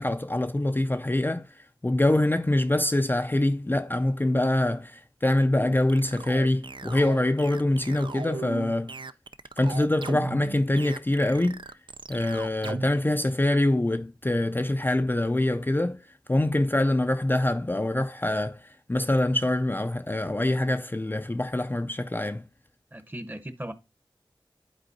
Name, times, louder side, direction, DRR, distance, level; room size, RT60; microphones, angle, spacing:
voice 1, 0.0-8.9 9.6-11.6 12.1-16.0 16.3-22.4, left 1 dB, 25° left, 0.4 m, -25 dB
sound 1, 5.6-12.9, right 4 dB, 65° right, 0.4 m, -37 dB
voice 2, 22.9-23.7, right 1 dB, 20° right, 0.9 m, -37 dB
10.5 x 4.3 x 2.7 m
wide cardioid pair, 55°, 9 cm